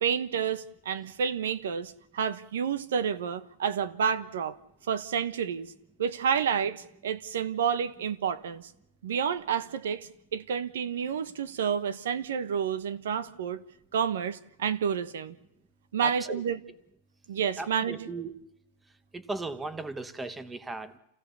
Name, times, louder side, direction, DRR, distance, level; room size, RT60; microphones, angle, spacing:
voice 1, 0.0-4.6 4.9-5.7 6.0-8.7 9.0-13.6 13.9-15.3 15.9-16.6 17.3-18.1, right 7 dB, 85° right, 1.2 m, -30 dB
voice 2, 16.0-16.4 17.6-18.3 19.1-21.0, right 3 dB, 10° right, 1.0 m, -37 dB
28.0 x 16.5 x 7.0 m
supercardioid pair, 160°, 0 cm